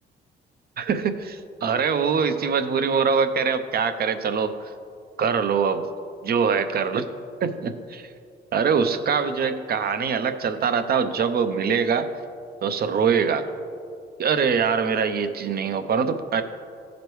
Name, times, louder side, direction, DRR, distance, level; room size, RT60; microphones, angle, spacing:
voice 1, 0.8-4.7 5.2-5.9 6.2-7.1 7.4-8.1 8.5-12.1 12.6-13.5 14.2-16.4, right 6 dB, 50° right, 9 dB, 0.6 m, -23 dB
15.0 x 5.1 x 3.1 m, 2.4 s
cardioid pair, 90°, 20 cm